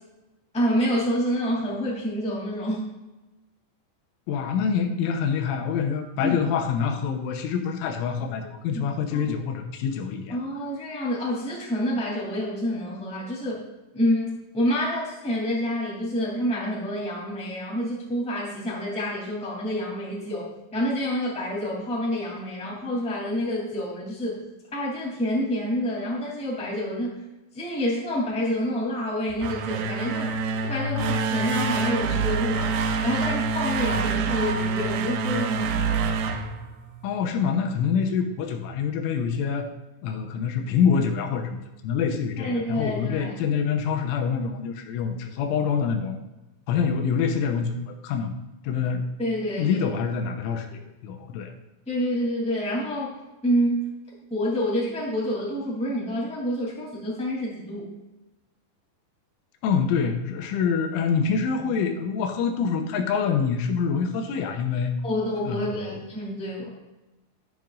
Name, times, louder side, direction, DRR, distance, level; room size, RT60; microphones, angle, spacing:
voice 1, 0.5-2.9 6.2-6.4 8.7-8.8 9.1-9.2 10.3-13.6 13.9-24.4 24.7-27.1 27.5-30.3 30.7-32.7 33.0-36.0 42.4-43.3 49.2-49.8 51.9-53.9 54.3-57.9 65.0-66.7, equal, ahead, -5 dB, 1.7 m, -28 dB
voice 2, 4.3-10.4 37.0-39.7 40.0-46.2 46.7-48.3 48.6-49.1 49.6-51.5 59.6-65.0 65.5-65.9, left 6 dB, 85° left, 4 dB, 3.3 m, -26 dB
sound 1, 29.3-37.3, right 4 dB, 90° right, 2.3 m, -26 dB
11.0 x 10.5 x 2.6 m, 1.0 s
omnidirectional pair, 5.6 m